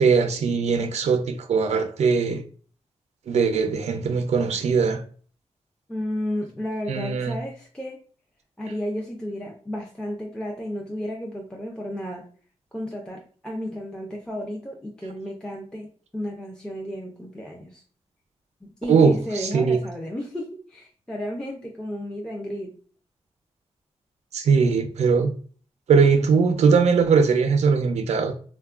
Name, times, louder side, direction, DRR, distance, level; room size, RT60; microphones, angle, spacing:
voice 1, 0.0-2.4 3.3-5.0 6.9-7.4 18.9-19.8 24.3-25.3 25.9-28.3, right 5 dB, 80° right, 0.4 m, -20 dB
voice 2, 5.9-8.0 8.6-12.2 12.7-15.9 16.1-17.8 18.6-22.7, equal, 5° left, 0.4 m, -33 dB
3.4 x 2.2 x 2.3 m
wide cardioid pair, 165°, 11 cm